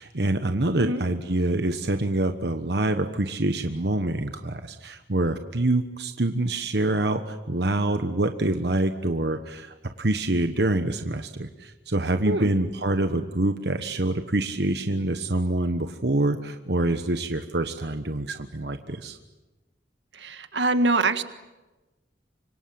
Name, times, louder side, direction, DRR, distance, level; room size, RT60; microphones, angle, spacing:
voice 1, 0.0-19.2, right 2 dB, 65° right, 7 dB, 1.3 m, -26 dB
voice 2, 20.1-21.2, right 2 dB, 85° right, 9 dB, 1.8 m, -24 dB
26.5 x 23.5 x 8.7 m, 1.1 s
head